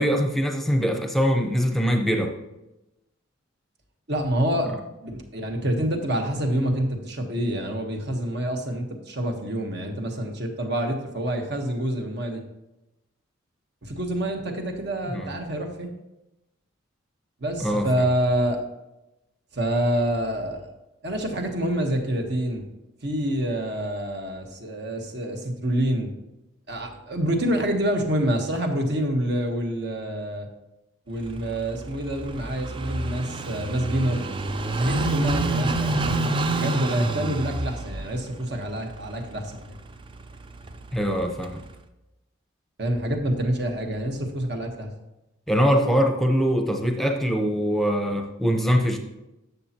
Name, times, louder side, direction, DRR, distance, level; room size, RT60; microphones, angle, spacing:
voice 1, 0.0-2.3 15.1-15.3 17.6-17.9 40.9-41.6 45.5-49.0, equal, ahead, 3 dB, 0.8 m, -23 dB
voice 2, 4.1-12.4 13.8-15.9 17.4-18.6 19.5-20.7 21.0-22.6 23.0-26.1 26.7-30.5 31.1-34.2 34.8-39.8 42.8-44.9, right 1 dB, 55° right, 3 dB, 1.3 m, -27 dB
Car passing by / Idling, 31.2-41.8, right 2 dB, 25° right, 0.4 m, -29 dB
12.0 x 7.0 x 2.9 m, 0.95 s
head